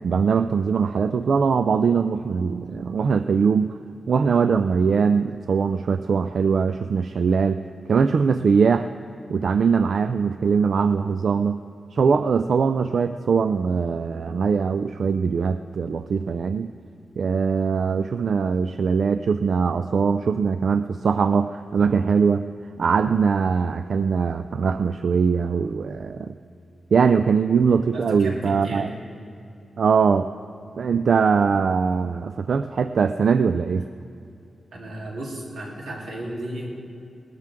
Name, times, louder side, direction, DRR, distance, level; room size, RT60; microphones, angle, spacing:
voice 1, 0.0-3.8 4.1-7.6 7.9-8.9 9.3-11.6 11.9-16.7 17.2-22.4 22.8-26.3 26.9-28.9 29.8-30.3 30.8-33.9, right 5 dB, 60° right, 10 dB, 0.3 m, -21 dB
voice 2, 27.9-28.9 34.7-36.7, right 1 dB, 85° right, -3 dB, 3.2 m, -34 dB
20.0 x 13.0 x 3.6 m, 2.5 s
wide cardioid pair, 140°, 0 cm